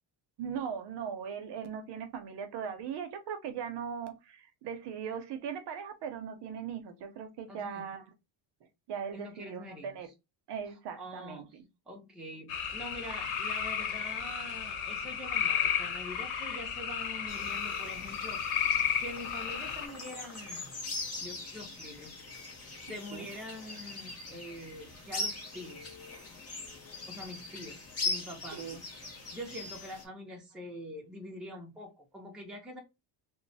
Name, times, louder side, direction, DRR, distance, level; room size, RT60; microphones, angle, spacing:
voice 1, 0.4-8.1 8.9-10.1 10.5-11.6 23.1-23.3 28.5-28.8, right 7 dB, 60° right, 0.7 m, -39 dB
voice 2, 7.5-7.9 9.1-10.1 11.0-11.4 11.9-20.8 21.2-22.1 22.8-26.0 27.1-28.8 29.3-32.8, equal, ahead, 0.5 m, -45 dB
sound 1, 12.5-19.9, left 8 dB, 85° left, 1.0 m, -33 dB
sound 2, 17.3-30.0, left 2 dB, 30° left, 1.0 m, -41 dB
3.0 x 2.1 x 4.0 m
cardioid pair, 180°, 48 cm